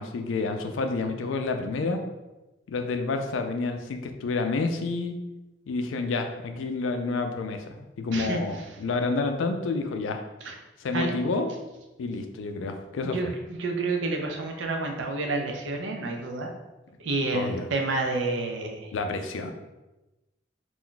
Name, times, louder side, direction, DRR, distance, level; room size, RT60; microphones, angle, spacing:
voice 1, 0.0-2.0 2.7-5.2 5.7-10.2 10.8-11.5 12.0-13.3 17.3-17.7 18.9-19.5, left 3 dB, 75° left, 6 dB, 0.4 m, -29 dB
voice 2, 13.1-16.5 17.0-18.9, right 3 dB, 65° right, 2 dB, 0.5 m, -29 dB
2.5 x 2.2 x 3.7 m, 1.0 s
head